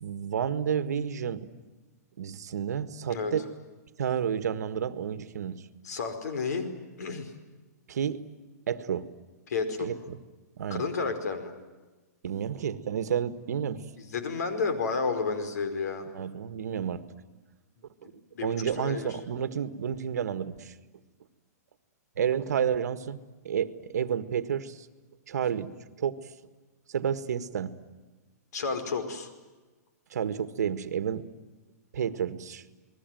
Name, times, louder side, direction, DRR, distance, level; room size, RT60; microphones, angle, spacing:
voice 1, 0.0-1.5 2.2-3.4 4.0-5.6 7.9-8.2 8.7-9.0 9.8-10.2 10.6-10.8 12.2-13.8 16.1-17.0 18.4-20.7 22.2-23.2 23.4-24.9 25.3-25.7 26.0-26.2 26.9-27.7 30.1-31.3 31.9-32.6, right 8 dB, 75° right, 12 dB, 1.7 m, -30 dB
voice 2, 5.8-6.7 7.0-7.3 9.5-9.9 10.8-11.5 14.0-16.1 18.0-19.2 28.5-29.3, left 4 dB, 75° left, 9 dB, 5.1 m, -31 dB
30.0 x 20.5 x 9.3 m, 1.2 s
hypercardioid pair, 170°, 9 cm